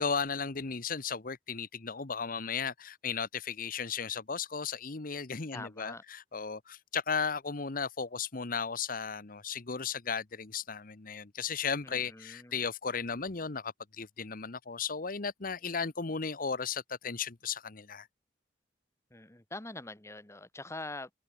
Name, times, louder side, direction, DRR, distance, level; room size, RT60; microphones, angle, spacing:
voice 1, 0.0-18.1, left 5 dB, 50° left, 1.1 m, -35 dB
voice 2, 5.5-6.0 11.8-12.6 19.1-21.1, left 2 dB, 15° left, 1.6 m, -44 dB
head